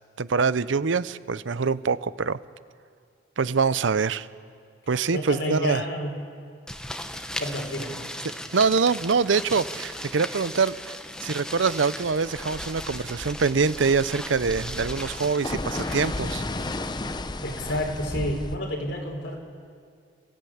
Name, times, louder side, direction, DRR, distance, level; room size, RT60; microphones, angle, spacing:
voice 1, 0.2-2.4 3.4-4.3 4.9-5.8 8.5-10.9 11.2-16.4, right 5 dB, 85° right, 16 dB, 0.6 m, -24 dB
voice 2, 5.1-6.1 7.4-7.9 17.4-19.4, equal, 75° left, 2 dB, 4.0 m, -29 dB
sound 1, 6.7-18.3, left 1 dB, 5° left, 1.0 m, -37 dB
sound 2, 12.2-18.6, left 2 dB, 25° left, 0.7 m, -34 dB
29.0 x 15.5 x 8.6 m, 2.3 s
head